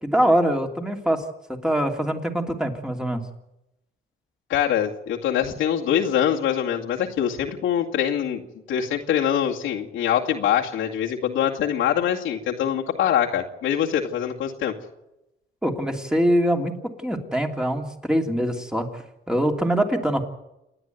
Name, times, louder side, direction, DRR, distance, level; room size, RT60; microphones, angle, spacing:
voice 1, 0.0-1.2 1.6-3.2 15.6-20.2, equal, 5° right, 3 dB, 2.8 m, -23 dB
voice 2, 4.5-8.4 8.7-14.7, left 9 dB, 90° left, -2 dB, 2.2 m, -24 dB
28.0 x 10.0 x 9.3 m, 0.92 s
cardioid pair, 90°, 20 cm